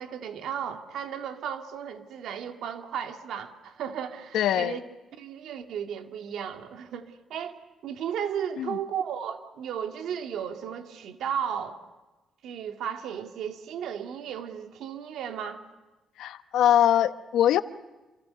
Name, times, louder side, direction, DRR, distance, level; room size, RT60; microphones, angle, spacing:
voice 1, 0.0-4.8 5.2-11.8 12.4-15.6, right 8 dB, 75° right, 2.3 m, -35 dB
voice 2, 4.3-4.8 8.6-8.8 16.2-17.6, left 11 dB, 80° left, 1.0 m, -22 dB
28.5 x 27.0 x 6.7 m
cardioid pair, 90°, 0 cm